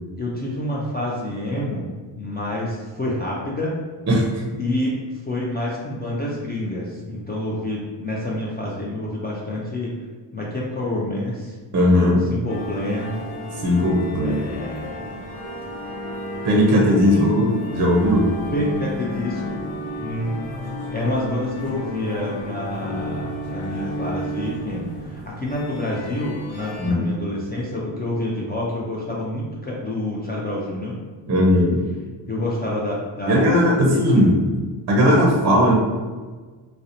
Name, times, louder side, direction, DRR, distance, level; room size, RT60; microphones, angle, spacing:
voice 1, 0.1-1.9 2.2-3.8 4.6-4.9 5.3-9.9 10.3-11.5 12.3-13.2 14.2-15.2 17.1-17.3 18.5-19.6 20.0-20.3 20.9-31.0 32.3-34.3, left 1 dB, 25° left, -5 dB, 0.3 m, -28 dB
voice 2, 11.7-12.2 13.6-14.5 16.4-18.3 26.8-27.1 31.3-31.8 33.3-34.3 34.9-35.7, equal, 35° right, -2 dB, 0.5 m, -17 dB
sound 1, 12.5-26.9, equal, 80° left, 0.8 m, -32 dB
2.6 x 2.0 x 2.5 m, 1.4 s
cardioid pair, 75°, 46 cm